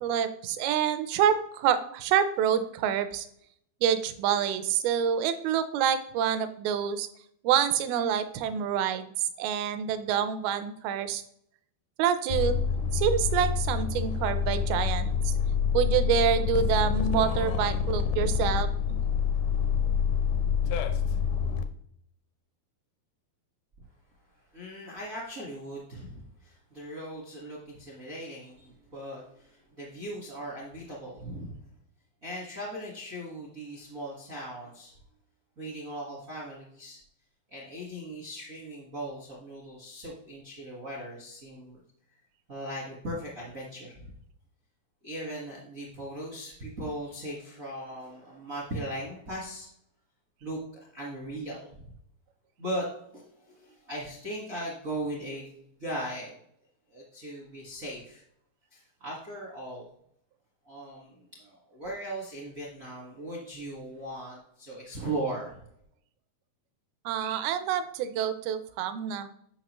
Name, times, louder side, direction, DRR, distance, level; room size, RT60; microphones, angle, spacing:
voice 1, 0.0-3.3 3.8-7.1 7.4-11.2 12.0-12.6 12.9-15.3 15.7-18.7 67.1-69.3, right 8 dB, 80° right, 11 dB, 2.5 m, -27 dB
sound 1, 12.3-21.6, left 7 dB, 80° left, 1.9 m, -27 dB
voice 2, 24.5-31.6 32.2-34.9 35.6-37.0 37.5-41.8 42.5-44.1 45.0-49.7 50.4-50.6 50.9-51.7 52.6-52.9 53.1-55.5 55.8-56.4 56.9-58.2 58.7-59.8 60.6-65.6, right 1 dB, 60° right, -4 dB, 0.8 m, -38 dB
9.7 x 5.8 x 3.0 m, 0.69 s
omnidirectional pair, 4.4 m